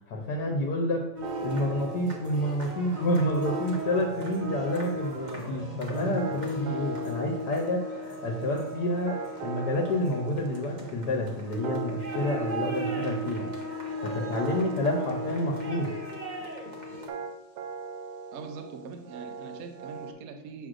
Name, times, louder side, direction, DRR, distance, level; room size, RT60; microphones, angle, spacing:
voice 1, 0.1-1.0 1.4-13.5 14.0-15.9, left 1 dB, 75° left, 0 dB, 1.4 m, -29 dB
sound 1, 1.2-17.1, equal, 35° right, 0.9 m, -36 dB
sound 2, 1.2-20.1, right 5 dB, 85° right, 1.3 m, -40 dB
voice 2, 18.3-20.7, right 5 dB, 65° right, 6 dB, 1.0 m, -42 dB
7.7 x 6.1 x 2.5 m, 0.93 s
omnidirectional pair, 1.8 m